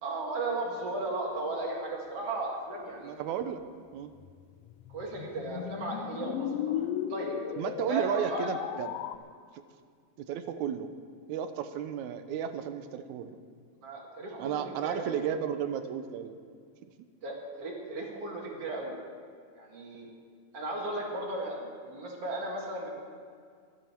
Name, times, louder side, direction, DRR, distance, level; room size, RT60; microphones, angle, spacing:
voice 1, 0.0-3.2 4.9-7.4 7.9-8.5 13.8-15.3 17.2-18.9 19.5-20.1 20.5-22.9, right 2 dB, 55° right, -1 dB, 3.0 m, -36 dB
voice 2, 3.0-3.6 3.9-4.1 7.6-9.0 10.2-10.9 11.3-13.4 14.4-16.4, right 9 dB, 85° right, 9 dB, 2.2 m, -33 dB
sound 1, 4.2-9.2, left 11 dB, 80° left, 1.4 m, -36 dB
24.0 x 9.3 x 4.5 m, 2.1 s
omnidirectional pair, 3.3 m